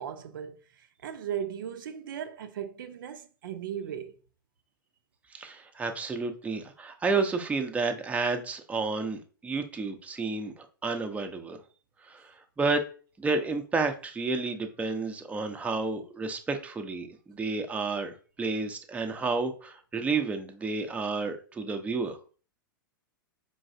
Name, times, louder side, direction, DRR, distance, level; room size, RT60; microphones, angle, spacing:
voice 1, 0.0-4.1, right 9 dB, 70° right, 0.5 m, -37 dB
voice 2, 5.3-11.6 12.0-12.8 13.2-22.2, right 3 dB, 10° right, 0.6 m, -31 dB
4.6 x 3.1 x 2.6 m
hypercardioid pair, 105°, 11 cm